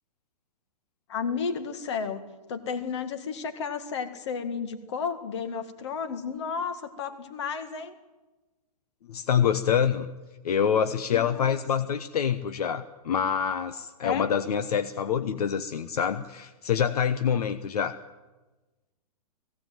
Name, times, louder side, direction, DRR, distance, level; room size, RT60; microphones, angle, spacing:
voice 1, 1.1-2.2 2.5-7.9 11.1-11.6 14.0-14.3, left 6 dB, 45° left, 9 dB, 2.0 m, -32 dB
voice 2, 9.1-10.1 10.4-18.0, left 8 dB, 70° left, 10 dB, 1.1 m, -26 dB
18.0 x 16.5 x 9.2 m, 1.1 s
hypercardioid pair, 175°, 20 cm